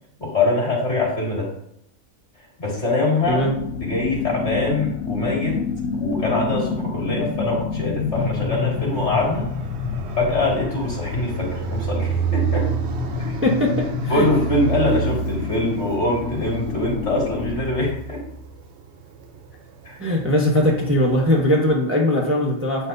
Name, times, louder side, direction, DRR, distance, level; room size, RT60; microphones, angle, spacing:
voice 1, 0.2-1.5 2.6-3.4 3.8-5.6 6.0-9.5 10.2-12.7 14.1-18.2 19.8-20.0, left 2 dB, 50° left, -3 dB, 2.5 m, -23 dB
sound 1, 3.2-17.6, left 5 dB, 80° left, 1.0 m, -29 dB
Fixed-wing aircraft airplane, 8.1-21.6, right 7 dB, 60° right, 0.8 m, -31 dB
voice 2, 13.4-14.3 20.0-22.9, left 1 dB, 10° right, -2 dB, 0.9 m, -20 dB
8.4 x 5.8 x 2.7 m, 0.72 s
omnidirectional pair, 1.5 m